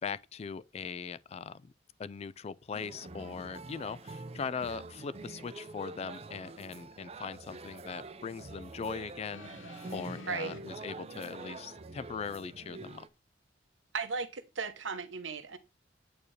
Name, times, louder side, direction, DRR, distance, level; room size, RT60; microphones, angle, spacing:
voice 1, 0.0-1.7 2.0-13.1, left 5 dB, 35° left, 0.3 m, -40 dB
sound 1, 2.7-13.1, right 2 dB, 35° right, 0.5 m, -46 dB
sound 2, 9.3-10.6 11.6-11.7, left 2 dB, 85° left, 1.0 m, -50 dB
voice 2, 13.9-15.6, right 5 dB, 85° right, 0.9 m, -36 dB
8.6 x 4.5 x 3.2 m
head